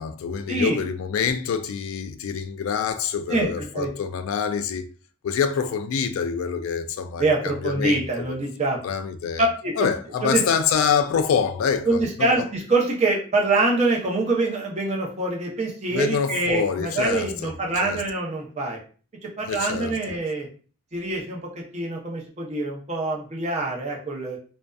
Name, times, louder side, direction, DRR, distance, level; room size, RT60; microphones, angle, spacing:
voice 1, 0.0-4.9 5.2-8.0 8.8-9.5 9.8-12.3 15.9-17.5 17.8-18.0 19.5-20.0, left 6 dB, 85° left, 0.3 m, -26 dB
voice 2, 3.3-3.9 7.2-8.8 9.4-9.9 10.2-10.4 11.9-18.8 19.4-20.5 20.9-24.4, right 2 dB, 35° right, 0.6 m, -25 dB
2.5 x 2.2 x 2.3 m
head